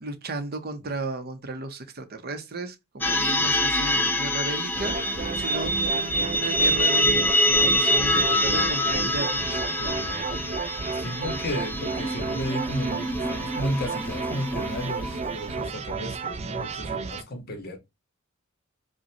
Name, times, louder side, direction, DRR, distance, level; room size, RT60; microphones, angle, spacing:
voice 1, 0.0-7.3 7.6-9.6, right 2 dB, 50° right, 0.7 m, -35 dB
sound 1, 3.0-15.5, left 1 dB, 10° left, 0.6 m, -26 dB
voice 2, 3.4-4.0 9.4-10.3 10.9-17.8, equal, 50° left, 1.1 m, -34 dB
sound 2, 4.7-17.2, right 4 dB, 30° right, 0.4 m, -32 dB
5.0 x 2.2 x 2.7 m
head